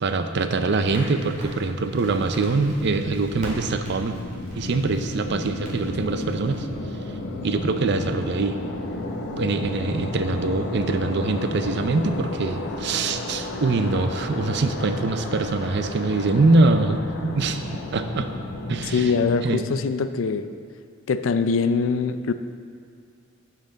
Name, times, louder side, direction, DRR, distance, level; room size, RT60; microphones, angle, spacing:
voice 1, 0.0-4.2 4.5-6.7 7.4-8.6 9.4-17.6 17.9-18.3 18.7-19.1 19.4-19.7, right 3 dB, 55° right, 8 dB, 0.5 m, -23 dB
Crackle, 0.9-6.6, equal, 40° right, 2.2 m, -41 dB
sound 1, 2.7-19.4, left 2 dB, 60° left, 0.8 m, -33 dB
voice 2, 18.9-20.5 21.1-22.3, left 5 dB, 75° left, 11 dB, 0.4 m, -23 dB
9.1 x 7.5 x 3.9 m, 2.3 s
head